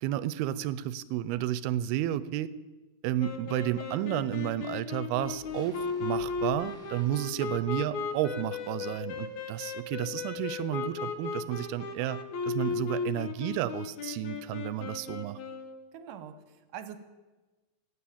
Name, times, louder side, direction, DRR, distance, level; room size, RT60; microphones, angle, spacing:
voice 1, 0.0-2.5 3.0-15.4, right 13 dB, 85° right, 16 dB, 2.6 m, -32 dB
sound 1, 3.2-15.8, left 5 dB, 65° left, 2.1 m, -36 dB
sound 2, 5.2-9.7 10.0-10.1, right 2 dB, ahead, 2.5 m, -53 dB
voice 2, 15.9-17.0, right 9 dB, 70° right, 10 dB, 2.2 m, -44 dB
16.0 x 9.6 x 8.7 m, 1.2 s
omnidirectional pair, 4.4 m